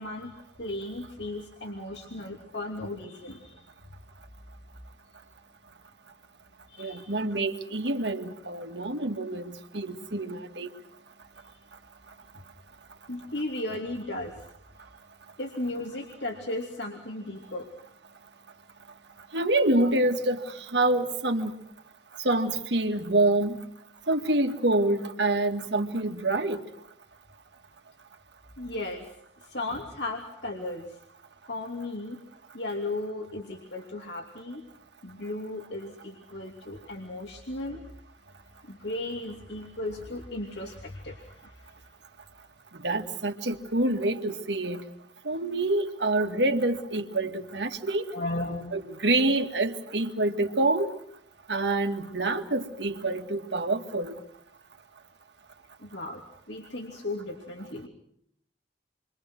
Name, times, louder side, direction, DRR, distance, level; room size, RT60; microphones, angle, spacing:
voice 1, 0.0-3.7 6.7-7.1 13.1-14.3 15.4-17.7 28.6-29.1 29.4-31.0 31.5-32.2 32.5-34.6 35.0-37.8 38.6-41.7 48.1-48.7 55.8-56.2 56.5-57.9, left 2 dB, 85° left, 1 dB, 2.9 m, -35 dB
voice 2, 6.8-10.7 19.3-21.5 22.2-23.6 24.1-26.6 42.8-44.8 45.2-48.1 48.7-50.9 51.5-54.2, right 2 dB, 85° right, 5 dB, 2.2 m, -27 dB
28.5 x 24.0 x 6.2 m, 0.68 s
head